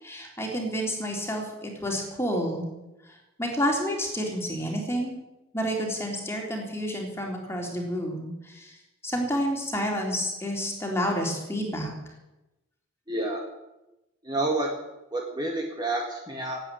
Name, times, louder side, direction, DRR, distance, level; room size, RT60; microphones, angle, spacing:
voice 1, 0.0-2.7 3.0-5.2 5.5-8.8 9.0-11.9, equal, 10° left, 0 dB, 3.6 m, -29 dB
voice 2, 13.1-13.4 14.2-14.7 15.1-16.6, right 2 dB, 20° right, 0 dB, 1.8 m, -29 dB
17.5 x 9.0 x 9.0 m, 0.99 s
head